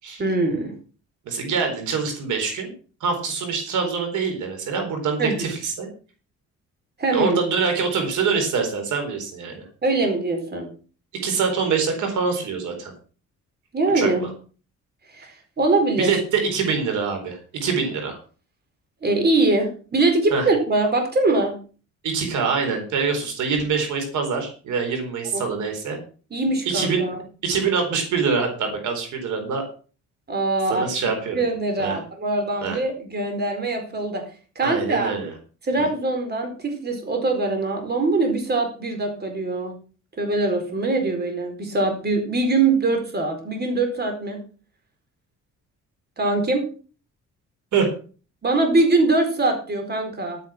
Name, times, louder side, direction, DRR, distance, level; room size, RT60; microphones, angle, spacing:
voice 1, 0.2-0.7 5.2-5.5 7.0-7.4 9.8-10.7 13.7-14.2 15.1-15.3 15.6-16.1 19.0-21.6 25.3-25.4 26.3-27.2 30.3-30.8 31.3-34.2 34.6-35.1 35.6-39.7 40.2-44.4 46.2-46.6 48.4-50.4, right 2 dB, 35° right, 4 dB, 4.4 m, -22 dB
voice 2, 1.3-2.7 3.0-5.9 7.1-9.6 11.2-12.9 13.9-14.3 16.0-18.2 20.3-20.5 22.0-26.0 26.7-27.1 27.4-29.6 30.7-31.4 31.8-32.0 32.6-32.8 34.6-35.3 35.8-35.9 47.7-47.9, right 5 dB, 80° right, 5 dB, 4.4 m, -24 dB
11.5 x 9.4 x 6.1 m, 0.38 s
cardioid pair, 115°, 29 cm